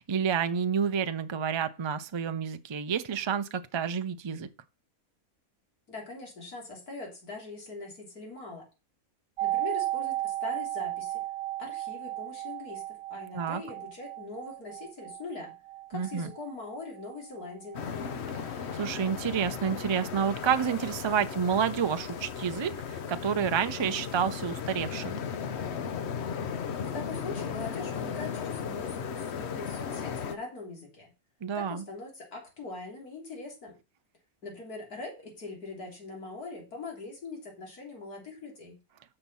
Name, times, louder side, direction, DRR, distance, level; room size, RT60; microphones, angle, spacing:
voice 1, 0.0-4.5 13.3-13.6 15.9-16.3 18.5-25.2 31.4-31.8, right 7 dB, 50° right, 0.3 m, -29 dB
voice 2, 5.9-8.7 9.4-11.2 11.6-15.5 15.9-18.2 26.8-31.1 31.5-33.8 34.4-38.8, left 3 dB, 85° left, 3.6 m, -42 dB
sound 1, 9.4-19.1 19.4-19.5, right 15 dB, 70° right, 1.1 m, -35 dB
sound 2, 17.7-30.3, left 7 dB, 55° left, 0.9 m, -36 dB
6.6 x 5.9 x 5.5 m
omnidirectional pair, 1.6 m